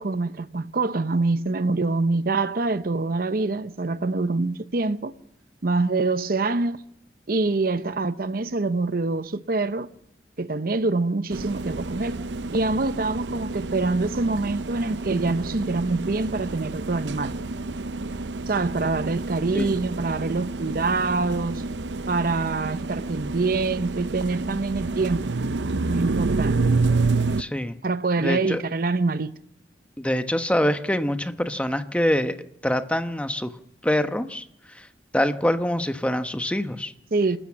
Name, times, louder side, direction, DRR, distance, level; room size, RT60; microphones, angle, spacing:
voice 1, 0.0-5.1 5.6-6.8 7.3-9.9 10.4-12.2 12.5-17.3 18.5-21.6 22.1-25.3 25.9-26.6 27.8-29.3 37.1-37.4, right 3 dB, 55° right, 0.7 m, -25 dB
sound 1, 11.3-27.4, right 3 dB, 90° right, 0.7 m, -29 dB
voice 2, 27.4-27.8 28.2-28.6 30.0-32.4 32.6-33.5 33.8-34.9 35.1-36.9, left 1 dB, 5° left, 1.0 m, -25 dB
28.0 x 13.5 x 7.3 m
head